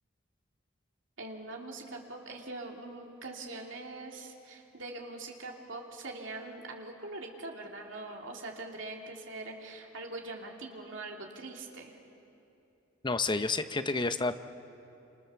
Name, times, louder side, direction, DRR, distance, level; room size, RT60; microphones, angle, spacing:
voice 1, 1.2-11.9, right 2 dB, 70° right, 1 dB, 3.0 m, -43 dB
voice 2, 13.0-14.4, left 3 dB, 25° left, 10 dB, 0.7 m, -30 dB
28.5 x 26.5 x 7.0 m, 2.9 s
head